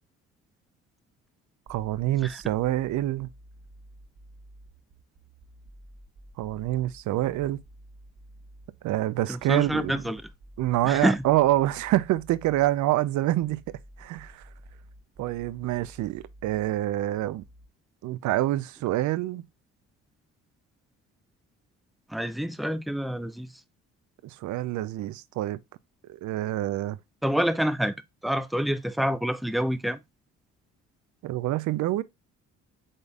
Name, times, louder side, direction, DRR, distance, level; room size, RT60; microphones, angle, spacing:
voice 1, 1.7-3.3 6.4-7.6 8.8-10.0 10.6-13.6 14.0-14.4 15.2-17.4 18.0-19.4 24.2-25.6 26.1-27.0 31.2-32.0, right 15 dB, 70° right, 0.5 m, -26 dB
sound 1, 3.2-17.7, right 1 dB, 50° right, 0.9 m, -51 dB
voice 2, 9.3-10.2 10.8-11.2 22.1-23.6 27.2-27.9 28.2-30.0, equal, ahead, 0.3 m, -27 dB
5.1 x 4.0 x 2.3 m
cardioid pair, 90°, 30 cm